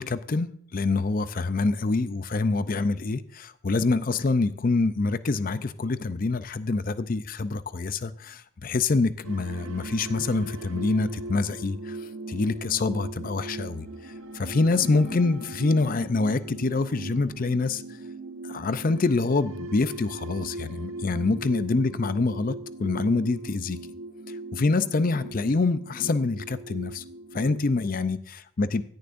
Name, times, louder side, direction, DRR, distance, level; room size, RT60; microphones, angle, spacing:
voice 1, 0.0-17.8 18.4-22.5 22.8-23.8 24.5-27.0 27.3-28.8, left 3 dB, 40° left, 13 dB, 0.5 m, -26 dB
sound 1, 9.2-27.6, right 3 dB, 70° right, 0.9 m, -39 dB
16.0 x 10.5 x 2.6 m, 0.62 s
head